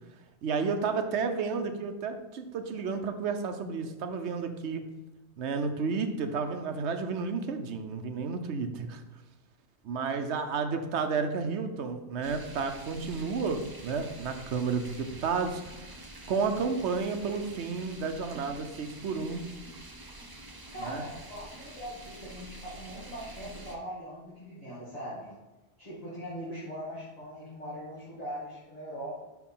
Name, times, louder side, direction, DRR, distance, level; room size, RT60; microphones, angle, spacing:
voice 1, 0.4-4.9 5.4-9.0 9.8-15.9 16.3-19.4 20.8-21.1, right 5 dB, 80° right, 7 dB, 1.0 m, -31 dB
sound 1, 12.2-23.8, right 2 dB, 25° right, 0.7 m, -47 dB
voice 2, 20.7-25.3 25.8-29.2, equal, 35° left, -9 dB, 2.1 m, -41 dB
6.1 x 4.7 x 5.5 m, 1.1 s
omnidirectional pair, 1.1 m